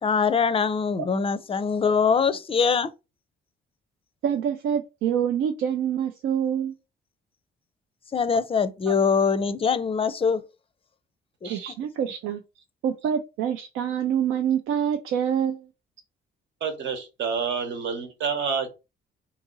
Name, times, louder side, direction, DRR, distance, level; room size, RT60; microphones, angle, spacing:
voice 1, 0.0-2.9 8.1-10.4 11.4-11.5, left 5 dB, 30° left, 0.4 m, -23 dB
voice 2, 4.2-6.7 8.9-9.0 11.5-12.4 12.8-15.7, right 8 dB, 85° right, 0.5 m, -26 dB
voice 3, 16.6-18.7, right 6 dB, 70° right, 1.1 m, -29 dB
2.8 x 2.7 x 3.9 m
cardioid pair, 90°, 20 cm